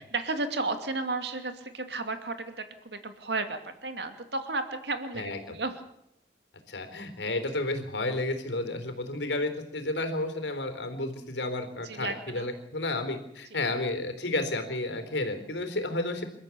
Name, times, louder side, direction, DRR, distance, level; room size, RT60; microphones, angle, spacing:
voice 1, 0.1-5.8 11.8-12.5 13.5-13.6, right 3 dB, 70° right, 8 dB, 2.5 m, -33 dB
voice 2, 6.7-16.2, left 2 dB, 90° left, 8 dB, 4.0 m, -31 dB
28.0 x 13.5 x 8.6 m, 0.78 s
head